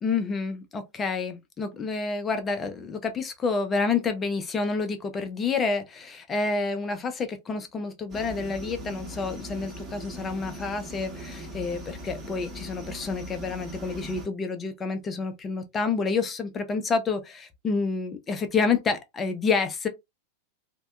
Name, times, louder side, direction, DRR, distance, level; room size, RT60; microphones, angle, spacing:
voice 1, 0.0-19.9, left 4 dB, 20° left, 0.5 m, -29 dB
sound 1, 8.1-14.3, equal, 20° right, 0.9 m, -40 dB
2.6 x 2.2 x 2.2 m
figure-of-eight pair, 90°, 0 cm